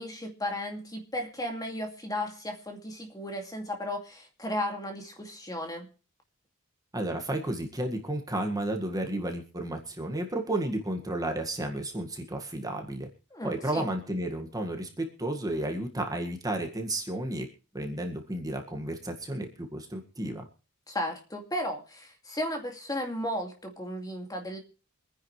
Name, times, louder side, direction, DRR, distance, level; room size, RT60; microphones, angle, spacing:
voice 1, 0.0-5.9 13.3-13.9 20.9-24.6, left 1 dB, 15° left, 3 dB, 2.4 m, -35 dB
voice 2, 6.9-13.1 13.4-17.5 17.7-20.4, right 1 dB, 15° right, 3 dB, 1.8 m, -32 dB
25.5 x 10.0 x 3.3 m, 0.36 s
head